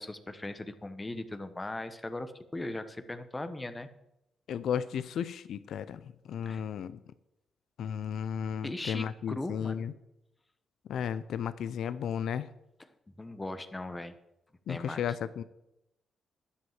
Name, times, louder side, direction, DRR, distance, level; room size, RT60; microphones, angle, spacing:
voice 1, 0.0-3.9 6.4-6.6 8.6-9.8 12.8-12.9 13.2-14.1 14.7-15.0, left 2 dB, 20° left, 10 dB, 1.0 m, -39 dB
voice 2, 4.5-6.0 6.3-7.0 7.8-9.9 10.9-12.5 14.7-15.4, left 8 dB, 75° left, 15 dB, 0.4 m, -34 dB
11.5 x 5.4 x 7.3 m, 0.87 s
cardioid pair, 65°, 0 cm